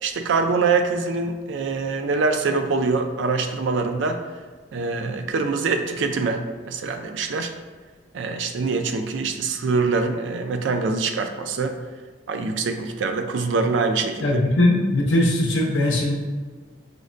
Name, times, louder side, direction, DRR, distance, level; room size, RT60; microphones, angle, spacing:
voice 1, 0.0-4.2 4.7-7.5 8.1-11.8 12.3-14.4, right 4 dB, 75° right, 6 dB, 0.4 m, -24 dB
voice 2, 14.2-16.1, left 1 dB, 80° left, -1 dB, 0.5 m, -20 dB
5.0 x 2.1 x 2.5 m, 1.5 s
head